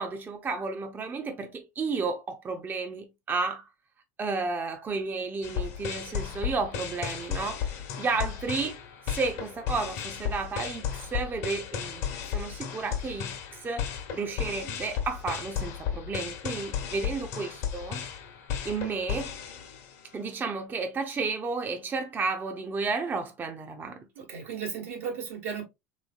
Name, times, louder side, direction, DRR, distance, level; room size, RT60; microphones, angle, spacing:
voice 1, 0.0-3.6 4.2-8.8 9.1-18.0 18.6-19.3 20.1-24.1, right 4 dB, 25° right, 0.6 m, -32 dB
sound 1, 5.4-20.2, left 8 dB, 65° left, 1.0 m, -34 dB
voice 2, 24.1-25.6, right 7 dB, 75° right, 1.4 m, -35 dB
3.4 x 3.2 x 2.3 m
hypercardioid pair, 75°, 8 cm